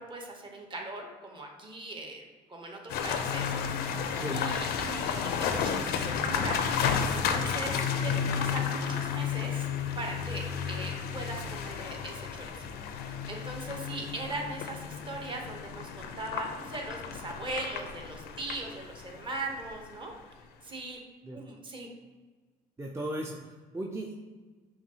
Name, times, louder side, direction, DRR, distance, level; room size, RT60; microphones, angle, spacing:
voice 1, 0.0-2.2 2.5-6.7 7.1-9.7 10.0-20.1 20.6-21.0 21.3-21.9, right 2 dB, 30° right, 1 dB, 0.9 m, -40 dB
sound 1, 2.9-20.1, left 7 dB, 75° left, 0.4 m, -32 dB
voice 2, 4.1-4.5 21.2-21.4 22.8-24.2, right 1 dB, 15° right, -1 dB, 0.4 m, -37 dB
5.7 x 2.4 x 2.8 m, 1.4 s
cardioid pair, 90°, 16 cm